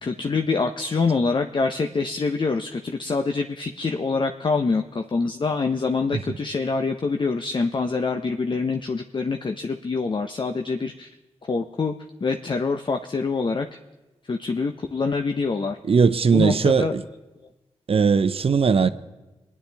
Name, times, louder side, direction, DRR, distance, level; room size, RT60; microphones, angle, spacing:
voice 1, 0.0-11.2 11.5-11.9 12.2-13.7 14.3-15.8 16.3-16.9, left 4 dB, 45° left, 0.7 m, -25 dB
voice 2, 15.9-17.0 17.9-18.9, right 5 dB, 55° right, 0.7 m, -19 dB
22.5 x 9.8 x 3.4 m
cardioid pair, 45°, 12 cm